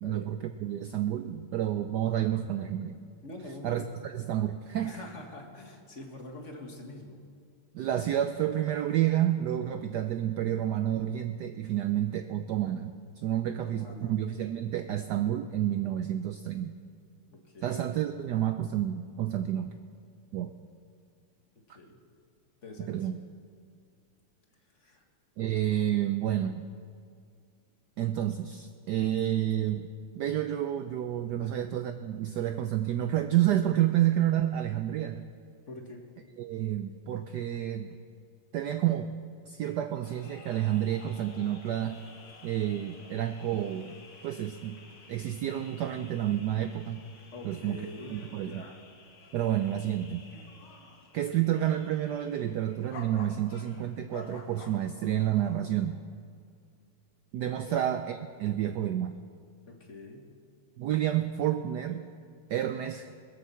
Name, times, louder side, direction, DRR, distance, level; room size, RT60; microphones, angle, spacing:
voice 1, 0.0-2.9 3.6-5.0 7.7-16.7 17.6-19.7 20.3-20.5 22.9-23.2 25.4-26.6 28.0-29.9 30.2-35.3 36.4-38.0 38.5-39.1 39.5-42.0 42.4-43.9 44.2-44.8 45.1-47.1 47.4-47.8 48.1-48.6 49.3-50.2 51.1-56.0 57.3-59.1 60.8-62.1 62.5-63.1, right 11 dB, 85° right, 8 dB, 0.9 m, -29 dB
voice 2, 3.2-3.9 4.8-7.2 13.6-14.1 17.3-17.9 21.8-22.0 22.6-23.1 24.7-25.0 31.4-31.5 35.7-36.0 47.3-48.8 57.6-57.8 59.7-60.3, left 2 dB, 35° left, 2 dB, 1.7 m, -45 dB
sound 1, 40.0-55.7, left 3 dB, 70° left, 2.2 m, -52 dB
21.5 x 7.5 x 7.0 m, 2.2 s
omnidirectional pair, 2.4 m